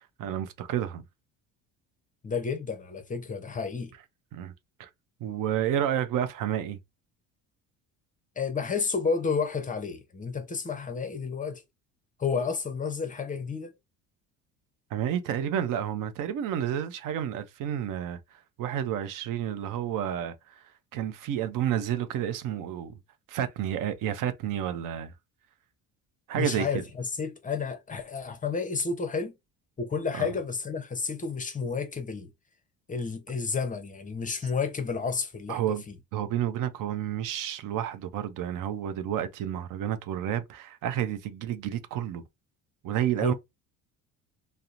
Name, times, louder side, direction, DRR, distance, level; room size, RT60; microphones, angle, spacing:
voice 1, 0.2-1.0 4.3-4.5 4.8-4.9 5.2-6.8 14.9-18.2 18.6-20.6 20.9-22.9 23.3-25.1 26.3-26.7 30.2-30.3 35.5-35.8 36.1-42.2 42.8-43.3, right 10 dB, 60° right, 0.5 m, -30 dB
voice 2, 2.2-3.9 8.4-11.6 12.2-13.7 26.3-29.3 29.8-32.3 32.9-36.0 43.2-43.3, left 5 dB, 20° left, 0.6 m, -31 dB
2.8 x 2.0 x 2.4 m
supercardioid pair, 90°, 36 cm